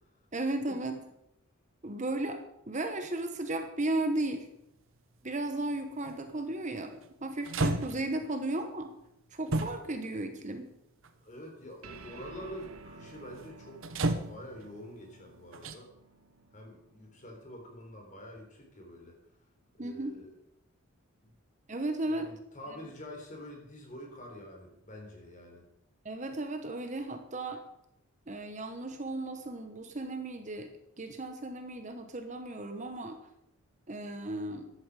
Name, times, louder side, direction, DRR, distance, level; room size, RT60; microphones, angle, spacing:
voice 1, 0.3-1.0 1.8-2.4 2.7-4.5 5.2-8.9 9.3-10.7 19.8-20.2 21.7-22.3 26.0-27.6 28.3-30.7 31.0-33.2 33.9-34.7, right 2 dB, 35° right, 6 dB, 1.1 m, -35 dB
sound 1, 6.0-6.2 7.0-7.1 7.4-8.2 9.5-10.1 11.0-11.1 13.8-14.7 15.5-15.7, right 2 dB, 65° right, 1.1 m, -31 dB
voice 2, 11.2-13.8 14.2-15.9 16.5-19.2 19.8-20.3 21.2-21.3 22.0-25.7, equal, 35° left, 2 dB, 3.8 m, -46 dB
sound 2, 11.8-18.6, right 3 dB, 85° right, 1.2 m, -53 dB
14.0 x 11.5 x 5.0 m, 0.80 s
head